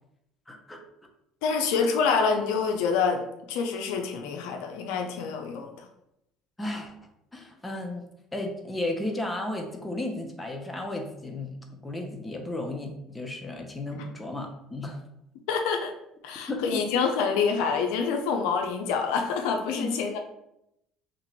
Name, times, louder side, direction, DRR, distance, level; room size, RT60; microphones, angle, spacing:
voice 1, 0.5-0.8 1.5-1.6 6.6-6.9 7.3-8.0 8.3-15.0 16.5-16.6 19.7-19.9, left 2 dB, 10° left, 2 dB, 0.8 m, -34 dB
voice 2, 1.4-3.2 3.5-5.7 13.9-14.0 15.5-15.9 16.2-20.2, left 5 dB, 80° left, 4 dB, 0.5 m, -26 dB
3.0 x 2.5 x 4.4 m, 0.81 s
supercardioid pair, 85°, 0 cm